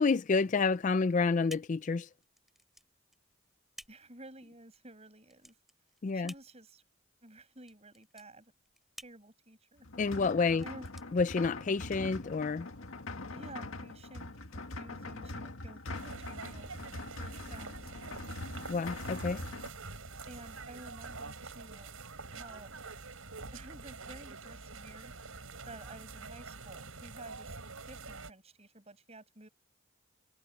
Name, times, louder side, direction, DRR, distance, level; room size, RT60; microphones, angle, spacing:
voice 1, 0.0-2.1 6.0-6.3 10.0-10.6 11.1-12.7 18.7-19.4, left 4 dB, 35° left, 0.4 m, -29 dB
sound 1, 0.6-12.0, equal, ahead, 6.0 m, -56 dB
voice 2, 3.9-5.5 6.1-6.8 7.2-8.5 9.0-9.9 10.6-10.9 13.3-16.7 17.2-17.9 20.3-21.9 22.3-22.8 23.5-25.1 25.7-27.6 27.9-29.5, right 2 dB, 30° right, 6.2 m, -52 dB
sound 2, 9.8-19.7, left 2 dB, 80° left, 1.9 m, -43 dB
sound 3, 15.9-28.3, right 4 dB, 90° right, 5.5 m, -46 dB
head